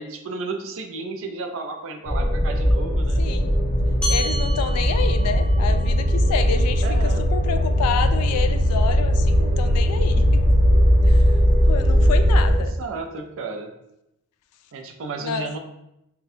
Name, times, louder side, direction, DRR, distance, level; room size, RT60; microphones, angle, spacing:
voice 1, 0.0-3.2 6.8-7.2 12.6-13.7 14.7-15.6, right 3 dB, 60° right, 5 dB, 0.4 m, -33 dB
sound 1, 2.0-12.5, equal, 45° left, 1.3 m, -19 dB
voice 2, 3.2-3.5 4.1-10.4 11.0-11.3 11.6-12.7 15.2-15.5, left 6 dB, 90° left, 8 dB, 0.3 m, -29 dB
sound 2, 4.0-8.8, equal, 5° left, 0.8 m, -35 dB
4.1 x 2.2 x 2.6 m, 0.85 s
head